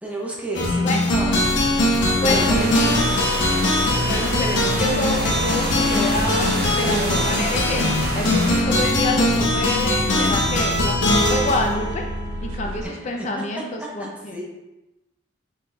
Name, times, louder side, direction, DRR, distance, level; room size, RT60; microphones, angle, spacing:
voice 1, 0.0-1.7 2.0-3.1 12.8-14.4, right 1 dB, 10° right, -3 dB, 0.8 m, -32 dB
sound 1, 0.5-12.8, left 1 dB, 80° left, 0.9 m, -21 dB
sound 2, 1.1-12.8, right 1 dB, 85° right, 0.3 m, -32 dB
voice 2, 2.2-2.7 4.0-7.8 8.1-12.0 12.4-14.4, left 2 dB, 40° left, 2 dB, 0.5 m, -27 dB
sound 3, 2.3-8.6, right 2 dB, 55° right, 0.8 m, -29 dB
5.6 x 3.8 x 2.3 m, 1.0 s
head